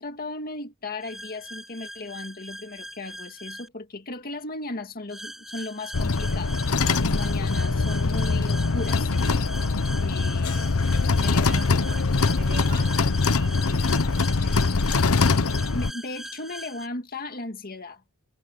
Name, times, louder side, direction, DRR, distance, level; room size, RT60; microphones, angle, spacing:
voice 1, 0.0-6.6 7.0-9.1 10.0-11.8 15.7-18.0, left 2 dB, 45° left, 2.0 m, -36 dB
sound 1, 1.0-3.7 5.1-16.9, equal, ahead, 2.3 m, -41 dB
sound 2, 5.9-15.9, left 4 dB, 85° left, 0.9 m, -23 dB
voice 2, 11.4-12.1 12.4-14.6, right 4 dB, 50° right, 6.3 m, -44 dB
head